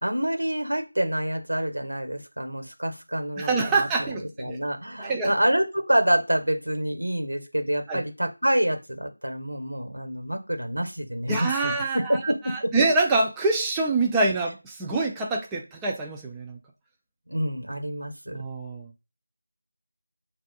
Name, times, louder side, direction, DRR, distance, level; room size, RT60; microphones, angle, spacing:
voice 1, 0.0-12.7 17.3-18.4, right 1 dB, 80° right, 5 dB, 1.1 m, -27 dB
voice 2, 3.4-4.6 5.0-5.3 7.9-8.0 11.3-16.6 18.3-18.9, right 3 dB, 5° right, 0 dB, 0.3 m, -26 dB
3.3 x 2.4 x 3.9 m, 0.29 s
figure-of-eight pair, 170°, 0 cm